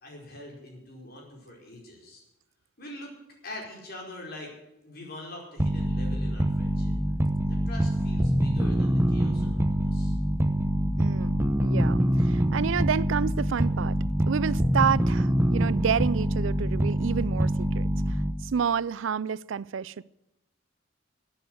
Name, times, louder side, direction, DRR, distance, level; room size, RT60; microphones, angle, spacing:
voice 1, 0.0-2.2 2.8-3.1 3.4-4.5 4.8-6.9 7.5-10.2 12.3-12.4, left 1 dB, 50° left, 4.8 m, -44 dB
sound 1, 5.6-18.5, right 1 dB, 10° right, 0.9 m, -25 dB
voice 2, 11.0-14.0 14.3-20.0, right 7 dB, 75° right, 0.4 m, -29 dB
12.5 x 9.4 x 7.9 m
head